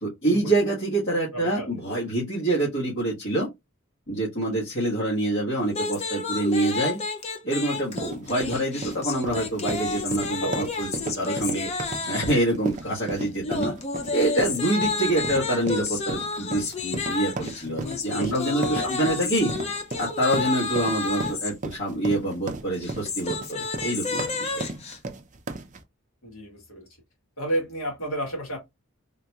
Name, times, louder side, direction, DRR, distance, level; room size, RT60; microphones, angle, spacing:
voice 1, 0.0-3.5 4.1-7.0 7.4-10.9 11.2-11.7 12.0-13.7 14.1-19.5 20.0-24.6, right 1 dB, 55° left, 1.4 m, -26 dB
voice 2, 1.3-1.8 10.3-10.7 17.6-18.9 26.2-26.9 27.4-28.6, right 1 dB, 80° left, 2.0 m, -32 dB
sound 1, 5.7-12.5 13.4-21.5 22.7-25.0, left 4 dB, 30° left, 0.5 m, -31 dB
sound 2, 7.7-25.8, right 2 dB, 35° right, 0.5 m, -35 dB
3.8 x 2.8 x 2.3 m
head